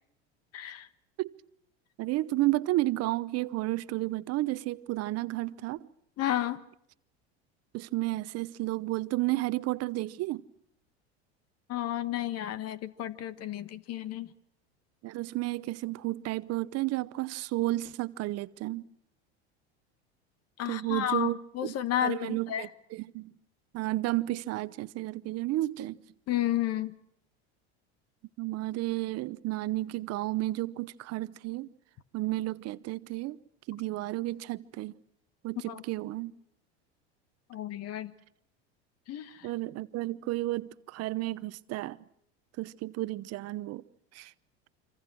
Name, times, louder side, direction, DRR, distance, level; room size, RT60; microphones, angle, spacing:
voice 1, 0.5-0.9 6.2-6.6 11.7-14.3 20.6-21.3 21.5-22.7 26.3-26.9 35.7-35.8 37.5-38.1 39.1-39.5, left 12 dB, 50° left, 1.5 m, -32 dB
voice 2, 2.0-5.9 7.7-10.4 15.0-18.9 20.7-21.4 21.6-23.3 23.7-26.0 28.4-31.7 32.1-33.4 33.7-34.9 35.4-36.3 39.4-42.0 42.6-43.8 44.1-44.3, right 18 dB, 50° right, 0.9 m, -32 dB
26.5 x 26.0 x 6.2 m
hypercardioid pair, 95°, 32 cm